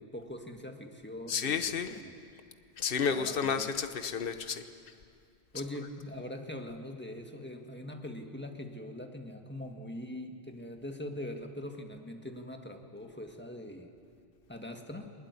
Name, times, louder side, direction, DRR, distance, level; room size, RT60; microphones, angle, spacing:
voice 1, 0.0-2.2 3.1-3.7 5.5-13.9 14.5-15.1, left 1 dB, 10° left, 3 dB, 1.7 m, -42 dB
voice 2, 1.3-1.9 2.8-4.6, left 6 dB, 60° left, 9 dB, 1.2 m, -31 dB
20.5 x 20.5 x 9.6 m, 2.4 s
omnidirectional pair, 1.1 m